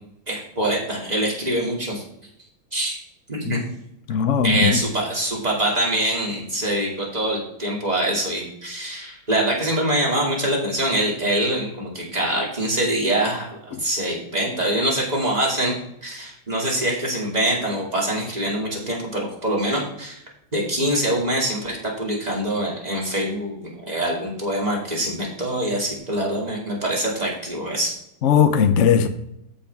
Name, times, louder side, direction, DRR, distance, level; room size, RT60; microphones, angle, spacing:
voice 1, 0.3-2.0 2.7-3.0 3.3-3.6 4.4-15.7 16.0-20.2 20.5-27.9, right 1 dB, 20° right, -3 dB, 2.6 m, -24 dB
voice 2, 4.1-4.8 13.7-13.8 28.2-29.1, left 7 dB, 80° left, 8 dB, 0.6 m, -18 dB
14.0 x 5.6 x 3.5 m, 0.76 s
omnidirectional pair, 2.3 m